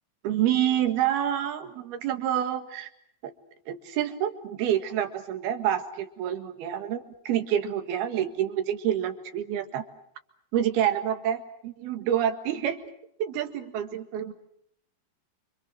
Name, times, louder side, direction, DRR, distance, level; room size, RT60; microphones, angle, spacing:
voice 1, 0.2-2.9 3.2-3.3 3.7-9.8 10.5-12.8 13.2-14.3, right 10 dB, 85° right, 7 dB, 3.8 m, -28 dB
29.0 x 26.0 x 6.3 m, 0.69 s
omnidirectional pair, 4.3 m